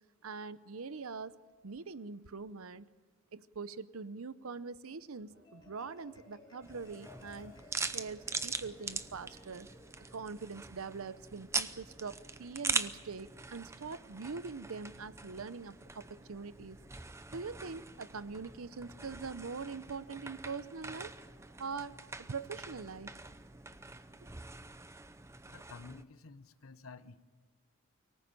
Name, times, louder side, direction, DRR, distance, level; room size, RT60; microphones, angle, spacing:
voice 1, 0.2-1.3 1.6-2.9 3.3-7.5 7.9-9.7 10.1-16.8 17.3-21.1 21.6-22.0 22.3-23.1, right 4 dB, 85° right, 15 dB, 0.7 m, -43 dB
Marimba xylophone, 5.2-11.8, left 2 dB, 20° left, 3.1 m, -60 dB
sound 1, 5.3-24.8, right 1 dB, 50° right, 1.9 m, -70 dB
sound 2, 6.6-26.0, right 4 dB, 15° right, 0.6 m, -42 dB
voice 2, 25.5-27.2, left 4 dB, 80° left, 13 dB, 1.0 m, -51 dB
24.5 x 18.5 x 8.9 m, 1.4 s
head